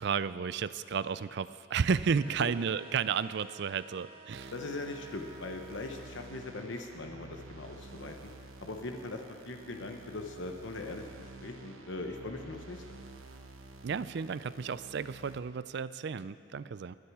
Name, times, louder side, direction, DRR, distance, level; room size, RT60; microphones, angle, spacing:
voice 1, 0.0-4.5 13.8-17.0, right 6 dB, 55° right, 16 dB, 0.4 m, -32 dB
sound 1, 1.9-6.1, right 3 dB, 25° right, 1.8 m, -54 dB
sound 2, 4.3-15.4, right 2 dB, 90° right, 1.0 m, -50 dB
voice 2, 4.5-8.3 8.6-12.8, left 2 dB, 65° left, 4 dB, 0.9 m, -40 dB
22.5 x 10.0 x 4.8 m, 2.4 s
head